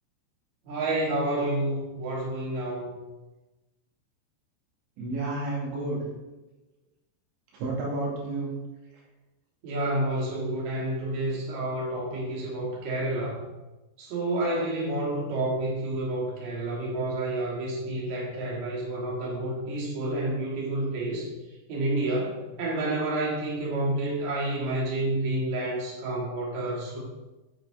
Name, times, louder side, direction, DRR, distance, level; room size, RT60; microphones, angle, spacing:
voice 1, 0.6-3.0 9.6-13.4 14.0-21.3 21.7-27.0, right 1 dB, 45° right, -5 dB, 3.3 m, -29 dB
voice 2, 5.0-6.1 7.6-8.5, right 2 dB, 90° right, -4 dB, 4.6 m, -30 dB
9.0 x 8.5 x 3.8 m, 1.1 s
omnidirectional pair, 5.2 m